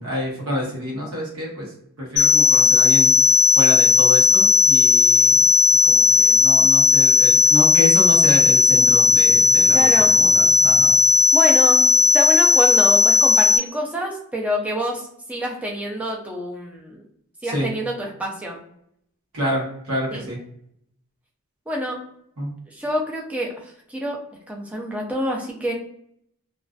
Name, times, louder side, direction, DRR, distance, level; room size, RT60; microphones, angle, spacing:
voice 1, 0.0-5.4 5.8-11.0 17.4-17.7 19.3-20.4 22.4-22.5, equal, 75° right, -3 dB, 0.9 m, -28 dB
sound 1, 2.2-13.6, left 4 dB, 50° left, 0.7 m, -16 dB
voice 2, 9.7-10.1 11.3-17.0 17.4-18.6 20.1-20.2 21.7-22.0 22.7-24.2 24.5-25.7, equal, 5° right, -1 dB, 0.4 m, -27 dB
2.4 x 2.4 x 2.2 m, 0.71 s
head